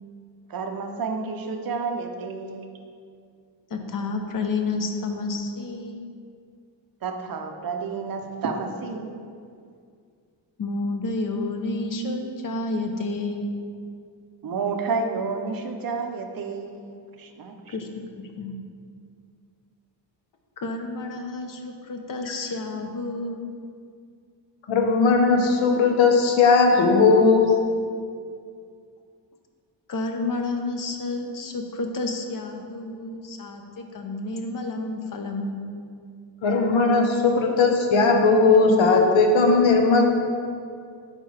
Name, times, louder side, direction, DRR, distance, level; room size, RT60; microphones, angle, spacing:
voice 1, 0.5-2.7 7.0-9.2 14.4-17.8, right 4 dB, 50° right, 5 dB, 0.6 m, -30 dB
voice 2, 3.7-6.0 10.6-13.5 17.7-17.9 18.2-18.5 20.6-23.5 29.9-35.7, left 3 dB, 45° left, 4 dB, 0.6 m, -30 dB
voice 3, 24.7-27.5 36.4-40.0, left 4 dB, 85° left, 2 dB, 0.9 m, -18 dB
8.3 x 5.1 x 3.2 m, 2.3 s
wide cardioid pair, 170°, 45 cm